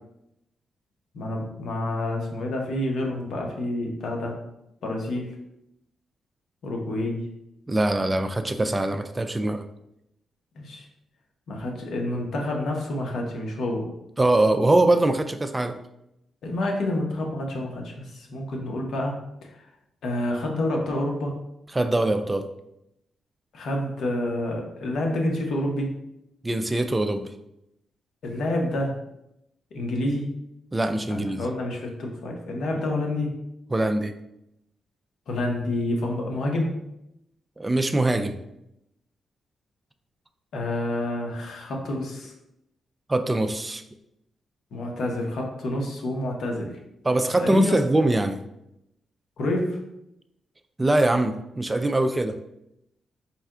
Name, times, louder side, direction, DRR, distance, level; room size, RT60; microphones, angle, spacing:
voice 1, 1.1-4.4 4.8-5.4 6.6-7.3 10.5-10.8 11.5-13.9 16.4-19.2 19.5-19.6 20.0-21.3 23.5-26.0 28.2-29.0 29.7-30.3 31.1-33.4 35.3-36.8 40.5-42.3 44.7-46.8 47.3-47.8 49.4-49.8, left 1 dB, 70° left, 1 dB, 0.8 m, -28 dB
voice 2, 7.7-9.6 14.2-15.8 21.7-22.5 26.4-27.3 30.7-31.4 33.7-34.1 37.6-38.4 43.1-43.8 47.0-48.4 50.8-52.4, right 2 dB, 15° right, 7 dB, 0.3 m, -23 dB
4.2 x 2.2 x 3.6 m, 0.82 s
cardioid pair, 120°, 0 cm